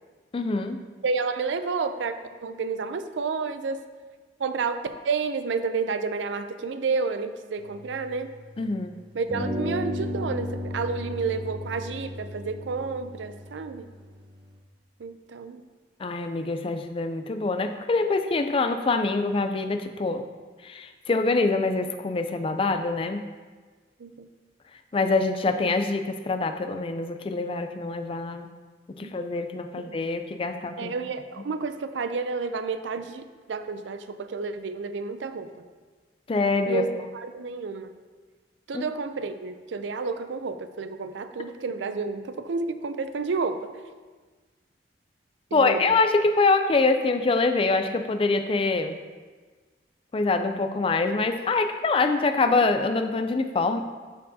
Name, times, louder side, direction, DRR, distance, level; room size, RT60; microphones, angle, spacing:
voice 1, 0.3-0.8 8.6-9.0 16.0-20.2 20.6-23.2 24.9-28.5 29.0-30.9 36.3-36.8 38.7-38.8 45.5-49.0 50.1-53.8, left 3 dB, 30° left, 8 dB, 0.4 m, -25 dB
voice 2, 1.0-3.8 4.4-8.3 9.1-13.9 15.0-15.6 24.0-24.3 29.0-29.1 29.8-30.0 30.8-35.5 36.7-37.9 38.7-43.7 45.5-45.9, right 4 dB, 90° right, 10 dB, 0.4 m, -30 dB
sound 1, 7.6-8.8 9.3-14.5, equal, 25° right, 0.9 m, -35 dB
12.0 x 4.5 x 2.7 m, 1.4 s
head